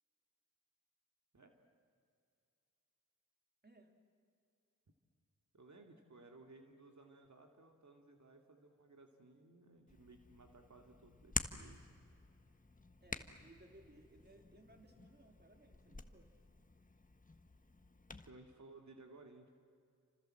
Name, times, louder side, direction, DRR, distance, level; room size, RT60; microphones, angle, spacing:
voice 1, 3.6-4.0 13.0-16.3, right 2 dB, 30° right, 4 dB, 3.2 m, -63 dB
voice 2, 5.5-11.9 18.1-19.6, right 2 dB, 65° right, 3 dB, 2.5 m, -60 dB
Hands, 9.9-18.3, left 2 dB, 25° left, 1.4 m, -48 dB
29.0 x 26.0 x 7.8 m, 2.4 s
wide cardioid pair, 65°, 31 cm